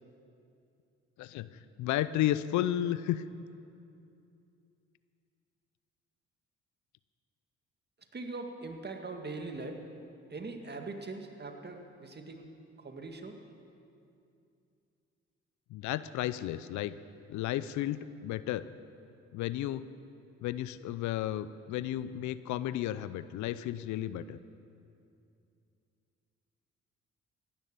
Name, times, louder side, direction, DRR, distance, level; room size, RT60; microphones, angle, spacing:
voice 1, 1.2-3.2 15.7-17.0 17.3-18.7 19.3-19.9 20.4-24.4, left 13 dB, 75° left, 16 dB, 0.6 m, -33 dB
voice 2, 8.1-9.8 10.3-12.5 12.8-13.3, right 3 dB, 35° right, 4 dB, 2.0 m, -41 dB
16.0 x 11.5 x 6.8 m, 2.6 s
supercardioid pair, 55°, 30 cm